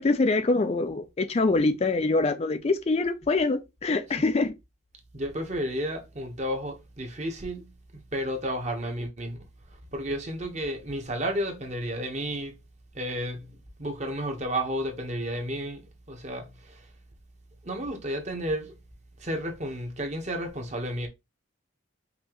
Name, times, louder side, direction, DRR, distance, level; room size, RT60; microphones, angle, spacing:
voice 1, 0.0-4.5, left 3 dB, 30° left, 0.4 m, -24 dB
voice 2, 5.1-9.4 9.9-12.5 12.9-15.8 16.1-16.9 17.6-18.7 19.2-21.1, equal, 35° right, 1.1 m, -32 dB
5.4 x 2.9 x 3.0 m
head